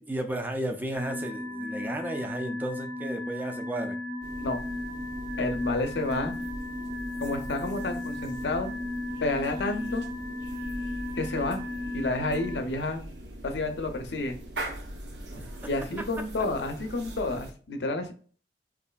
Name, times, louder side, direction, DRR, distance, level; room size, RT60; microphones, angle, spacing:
voice 1, 0.1-4.0 15.4-15.5, right 1 dB, 10° right, 5 dB, 0.3 m, -33 dB
sound 1, 0.9-12.6, left 1 dB, 40° right, 0.7 m, -35 dB
sound 2, 4.2-17.5, right 1 dB, 75° right, 0.7 m, -41 dB
voice 2, 5.4-6.4 7.2-8.7 9.2-10.1 11.2-11.6 11.9-13.0 13.4-14.4 15.7-18.1, left 2 dB, 75° left, 6 dB, 0.5 m, -30 dB
3.1 x 2.5 x 2.2 m, 0.41 s
head